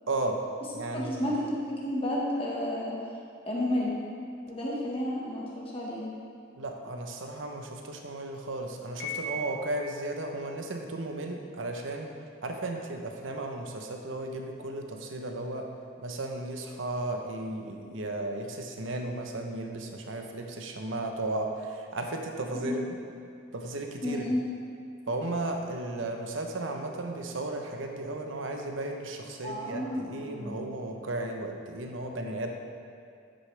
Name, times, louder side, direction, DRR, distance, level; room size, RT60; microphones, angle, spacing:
voice 1, 0.1-0.4 0.7-1.3 6.6-12.1 12.4-15.7 16.0-23.0 23.5-24.2 25.1-32.5, right 2 dB, 80° right, 3 dB, 0.9 m, -35 dB
voice 2, 0.9-3.0 3.4-3.9 4.5-6.0 22.5-22.8 24.0-24.4 29.4-30.6, left 1 dB, 30° left, -5 dB, 1.5 m, -31 dB
Piano, 9.0-10.1, equal, 70° left, 2.0 m, -37 dB
10.0 x 8.0 x 3.4 m, 2.3 s
head